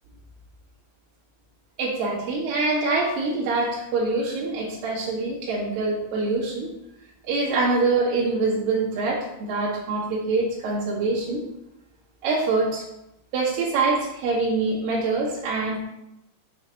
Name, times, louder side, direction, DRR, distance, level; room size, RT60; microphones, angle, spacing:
voice 1, 1.8-6.7 7.2-11.4 12.2-12.8 13.3-15.8, right 3 dB, 60° right, -7 dB, 3.8 m, -24 dB
8.6 x 6.5 x 4.0 m, 0.87 s
omnidirectional pair, 4.8 m